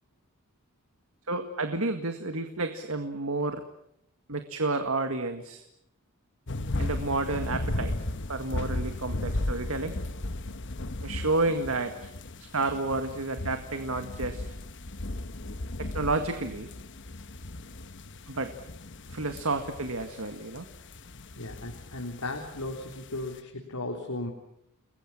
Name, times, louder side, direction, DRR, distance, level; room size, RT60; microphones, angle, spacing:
voice 1, 1.3-3.6 4.3-5.6 6.8-7.9 8.3-10.0 11.0-12.1 12.5-14.6 15.8-16.7 18.3-18.5 19.1-20.7, right 2 dB, 65° right, 7 dB, 2.0 m, -30 dB
sound 1, 6.5-23.4, left 1 dB, 55° left, 1.2 m, -36 dB
voice 2, 21.4-24.3, left 2 dB, 90° left, 2 dB, 3.7 m, -36 dB
30.0 x 22.0 x 7.4 m, 0.75 s
head